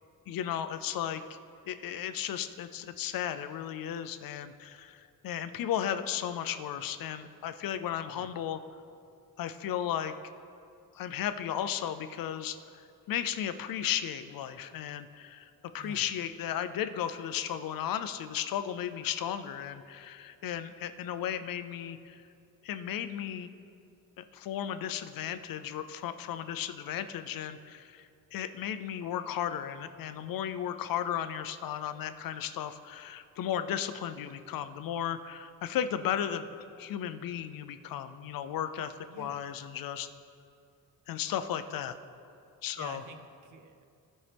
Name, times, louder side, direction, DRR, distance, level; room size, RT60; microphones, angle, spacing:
voice 1, 0.3-1.2 1.7-8.6 9.4-10.1 10.9-12.8 13.1-22.2 22.6-23.5 24.2-36.5 36.8-40.1 41.1-42.0 42.6-43.0, left 10 dB, 75° left, 11 dB, 0.5 m, -35 dB
voice 2, 39.1-39.5 42.8-43.8, right 4 dB, 60° right, 8 dB, 0.7 m, -48 dB
16.0 x 5.4 x 3.4 m, 2.5 s
wide cardioid pair, 160°, 34 cm